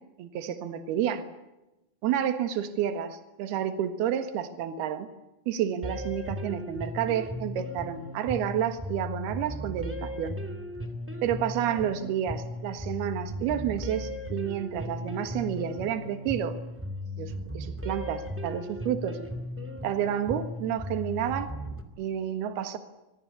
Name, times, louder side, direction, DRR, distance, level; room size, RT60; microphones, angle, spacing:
voice 1, 0.2-1.2 2.0-5.1 5.5-10.4 11.2-16.5 17.2-19.2 19.8-21.5 22.0-22.8, right 10 dB, 80° right, 9 dB, 3.5 m, -30 dB
sound 1, 5.8-21.8, left 1 dB, 5° right, 2.3 m, -37 dB
25.0 x 25.0 x 8.5 m, 0.98 s
omnidirectional pair, 4.6 m